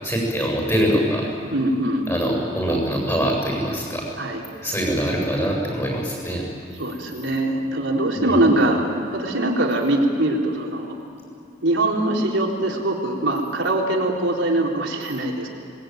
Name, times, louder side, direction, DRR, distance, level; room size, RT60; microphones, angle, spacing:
voice 1, 0.0-1.3 2.1-4.0 4.6-6.4 8.2-8.4, equal, 15° left, -2 dB, 7.2 m, -23 dB
voice 2, 1.5-2.1 4.2-4.4 6.8-10.9 11.6-15.5, right 1 dB, 90° right, -1 dB, 4.0 m, -22 dB
27.0 x 21.0 x 9.2 m, 2.5 s
head